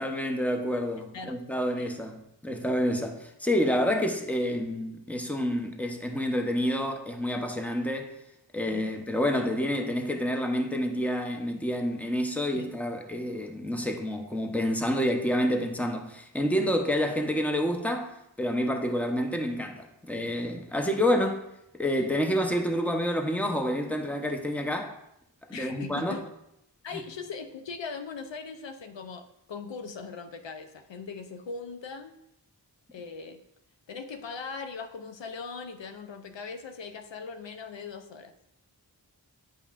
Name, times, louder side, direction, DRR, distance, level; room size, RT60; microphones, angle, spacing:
voice 1, 0.0-8.2 8.5-21.4 21.7-25.0 25.5-26.2 26.9-27.0, equal, 5° left, 0.7 m, -28 dB
voice 2, 25.5-26.3 26.8-29.2 29.5-32.2 32.9-33.4 33.9-38.3, left 5 dB, 90° left, 0.6 m, -40 dB
9.1 x 5.3 x 2.4 m
wide cardioid pair, 45°, 43 cm